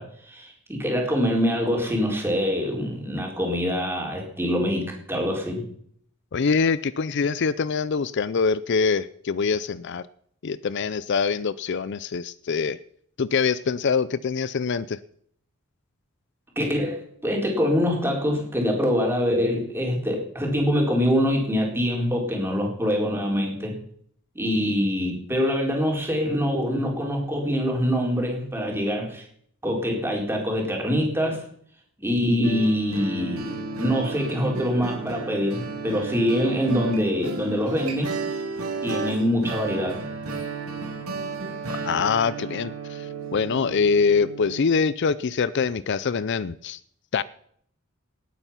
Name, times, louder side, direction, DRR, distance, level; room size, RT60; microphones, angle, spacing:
voice 1, 0.0-5.6 16.6-23.7 24.3-29.3 29.6-31.4 32.0-38.1 38.8-40.0, equal, 10° right, 0 dB, 4.2 m, -24 dB
voice 2, 6.3-10.0 10.4-12.8 13.2-15.0 41.8-46.8 47.1-47.2, left 5 dB, 55° left, 17 dB, 0.5 m, -24 dB
sound 1, 32.4-44.6, right 4 dB, 85° right, 2.9 m, -33 dB
19.5 x 9.0 x 5.7 m, 0.64 s
head